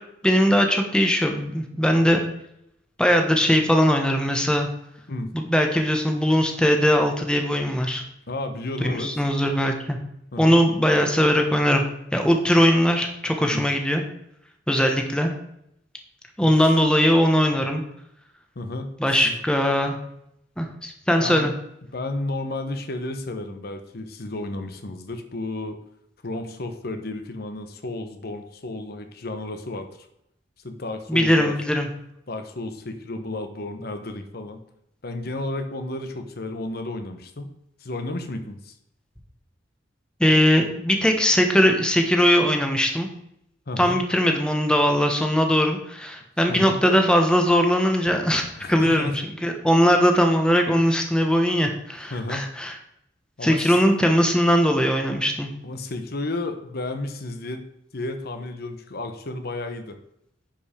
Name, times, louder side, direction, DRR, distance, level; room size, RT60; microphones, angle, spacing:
voice 1, 0.2-2.2 3.0-4.7 5.3-8.0 8.8-10.0 10.4-11.8 12.1-14.0 14.7-15.3 16.4-17.8 19.0-20.0 20.6-21.5 31.1-31.9 40.2-43.1 43.8-48.4 48.7-49.1 49.4-52.7 53.4-55.5, equal, 5° left, 3 dB, 1.1 m, -20 dB
voice 2, 8.3-9.1 10.3-10.6 13.5-13.7 16.4-16.5 18.5-19.4 21.2-21.5 21.9-25.8 26.2-29.9 30.6-31.6 32.3-34.6 35.0-37.5 37.8-38.7 43.7-44.0 46.5-46.8 48.6-49.2 52.1-52.5 53.4-53.8 55.6-57.6 57.9-60.0, left 2 dB, 55° left, 7 dB, 1.0 m, -32 dB
10.5 x 5.2 x 5.0 m, 0.76 s
head